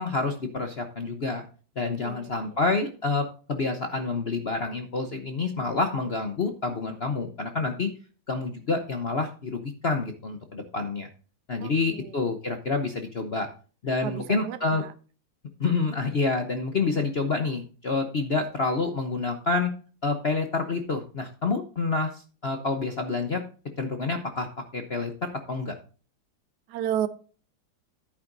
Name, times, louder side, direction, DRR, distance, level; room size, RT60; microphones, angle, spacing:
voice 1, 0.0-1.4 1.8-7.9 8.3-11.1 11.5-13.5 13.8-14.8 15.6-19.7 20.0-23.4 23.8-25.7, left 3 dB, 45° left, 6 dB, 0.8 m, -28 dB
voice 2, 1.8-2.4 11.6-12.1 14.0-14.9 26.7-27.1, right 10 dB, 65° right, 11 dB, 1.2 m, -32 dB
11.0 x 9.3 x 2.6 m, 0.38 s
omnidirectional pair, 2.2 m